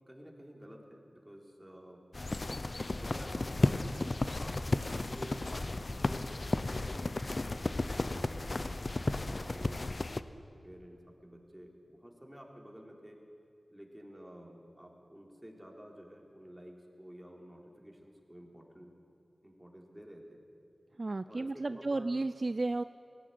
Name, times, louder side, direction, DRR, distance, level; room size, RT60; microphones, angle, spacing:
voice 1, 0.1-2.0 2.9-4.6 5.1-5.5 5.9-9.8 10.6-13.2 13.7-18.9 19.4-20.4 21.3-22.1, equal, 10° right, 0 dB, 4.1 m, -51 dB
sound 1, 2.1-10.2, left 2 dB, 50° left, 0.8 m, -33 dB
voice 2, 21.0-22.8, right 2 dB, 50° right, 12 dB, 0.4 m, -33 dB
18.0 x 16.0 x 9.5 m, 2.5 s
cardioid pair, 45°, 0 cm